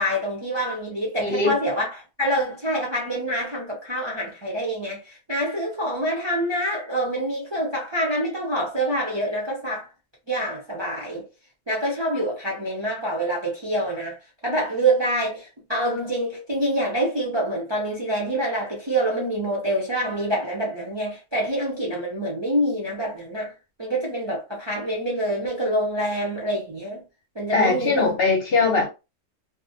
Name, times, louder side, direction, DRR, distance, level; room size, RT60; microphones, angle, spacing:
voice 1, 0.0-9.9 10.3-11.2 11.7-23.5 23.8-27.0 27.4-28.1, right 1 dB, 35° right, 0.4 m, -26 dB
voice 2, 1.2-1.6 27.5-28.9, left 4 dB, 55° left, 0.8 m, -21 dB
2.4 x 2.1 x 2.6 m
omnidirectional pair, 1.4 m